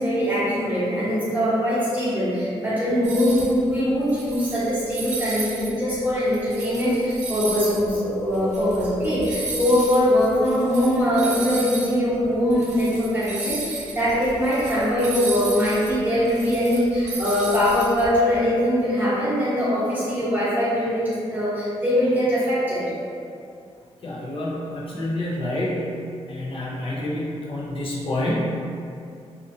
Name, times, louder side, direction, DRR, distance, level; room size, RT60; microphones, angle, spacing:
voice 1, 0.0-22.8, equal, 15° right, -12 dB, 1.1 m, -22 dB
sound 1, 3.0-3.5 4.0-5.7 6.1-11.9 12.2-12.3 12.5-18.1, right 2 dB, 85° right, 0.6 m, -34 dB
voice 2, 24.0-26.0 26.3-28.4, left 1 dB, 50° left, -5 dB, 0.7 m, -28 dB
2.6 x 2.5 x 2.7 m, 2.4 s
wide cardioid pair, 110°, 11 cm